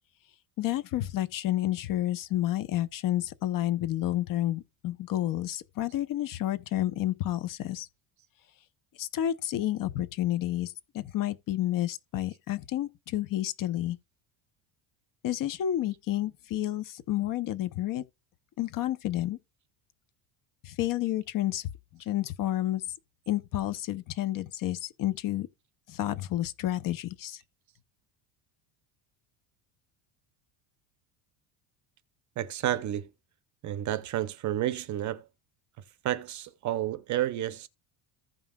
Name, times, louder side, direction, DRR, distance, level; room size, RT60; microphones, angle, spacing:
voice 1, 0.6-7.9 9.0-14.0 15.2-18.0 18.6-19.4 20.6-21.7 22.0-22.8 23.3-25.5 25.9-27.4, left 13 dB, 45° left, 0.7 m, -30 dB
voice 2, 32.4-33.1 33.6-35.3 36.0-37.7, right 12 dB, 40° right, 0.6 m, -30 dB
15.0 x 5.4 x 2.3 m
cardioid pair, 155°, 47 cm